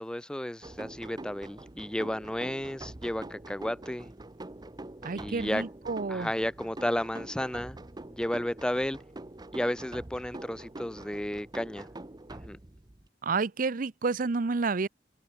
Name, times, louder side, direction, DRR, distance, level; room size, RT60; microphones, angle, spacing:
voice 1, 0.0-4.1 5.1-5.6 6.1-7.8 8.2-9.0 9.5-11.9 12.3-12.6, left 1 dB, 5° left, 0.5 m, -33 dB
sound 1, 0.6-13.1, right 2 dB, 25° right, 0.8 m, -45 dB
voice 2, 5.0-6.3 13.2-14.9, right 4 dB, 50° right, 0.6 m, -30 dB
head